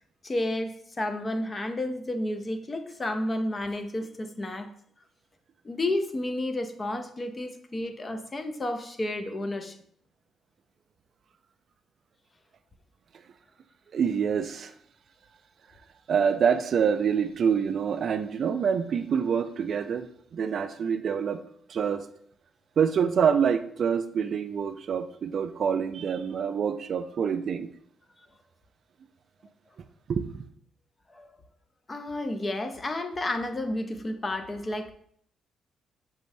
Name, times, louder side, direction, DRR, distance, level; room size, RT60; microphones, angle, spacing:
voice 1, 0.2-4.7 5.6-9.8 31.1-31.3 31.9-34.9, left 1 dB, 30° left, 8 dB, 0.5 m, -31 dB
voice 2, 13.9-14.7 16.1-21.4 21.7-22.1 22.8-27.7 30.1-30.4, right 7 dB, 55° right, 10 dB, 0.3 m, -26 dB
5.9 x 2.6 x 3.2 m, 0.64 s
cardioid pair, 90°, 0 cm